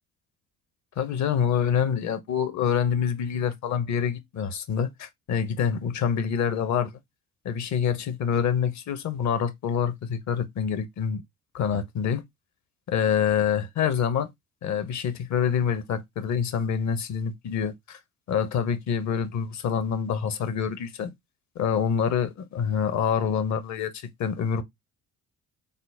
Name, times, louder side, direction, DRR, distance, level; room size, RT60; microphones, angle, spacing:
voice 1, 1.0-6.9 7.4-11.2 11.5-12.2 12.9-14.3 14.6-18.0 18.3-21.1 21.6-24.6, left 7 dB, 45° left, 0.7 m, -26 dB
3.8 x 2.0 x 3.3 m
figure-of-eight pair, 45°, 41 cm